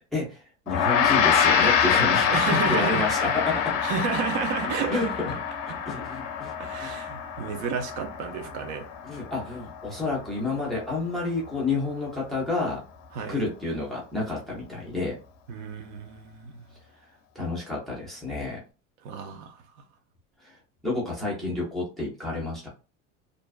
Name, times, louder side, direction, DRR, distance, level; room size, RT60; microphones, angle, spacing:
voice 1, 0.1-3.8 4.9-5.3 5.9-6.5 6.8-6.9 9.0-12.8 13.3-15.2 17.3-18.6 20.4-20.6 20.8-22.7, left 3 dB, ahead, 0.4 m, -30 dB
Gong, 0.7-10.2, left 7 dB, 60° left, 0.5 m, -25 dB
voice 2, 2.3-3.3 3.8-5.1 6.6-8.8 13.1-13.4 15.5-16.7 19.0-19.6, right 6 dB, 85° right, 0.7 m, -31 dB
2.4 x 2.2 x 2.3 m
cardioid pair, 175°, 34 cm